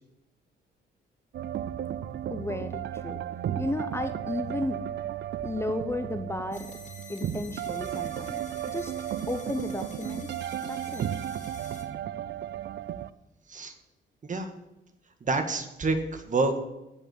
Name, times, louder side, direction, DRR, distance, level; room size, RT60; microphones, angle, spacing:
sound 1, 1.3-13.1, right 11 dB, 60° right, 0.5 m, -34 dB
voice 1, 2.3-3.2 3.6-4.8 5.4-6.7 7.1-8.9 9.3-10.3 10.6-11.1, left 2 dB, 15° left, 8 dB, 0.8 m, -34 dB
sound 2, 6.5-11.8, left 4 dB, 40° left, 2.9 m, -49 dB
voice 2, 15.2-16.6, right 3 dB, 40° right, 6 dB, 1.9 m, -28 dB
15.5 x 5.4 x 8.1 m, 0.94 s
cardioid pair, 90°, 20 cm